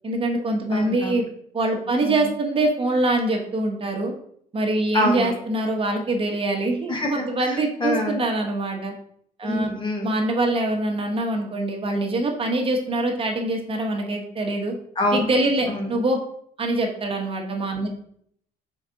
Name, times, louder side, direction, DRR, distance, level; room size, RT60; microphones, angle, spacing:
voice 1, 0.0-1.2 1.5-4.1 4.5-8.9 9.4-9.7 10.0-14.8 15.1-16.2 16.6-17.9, right 2 dB, 35° right, 1 dB, 1.2 m, -24 dB
voice 2, 0.7-1.1 2.0-2.2 4.9-5.3 6.9-8.3 9.4-10.1 15.0-15.2 15.7-15.9, left 1 dB, 30° left, 2 dB, 1.2 m, -26 dB
5.2 x 4.7 x 3.9 m, 0.66 s
cardioid pair, 110°, 17 cm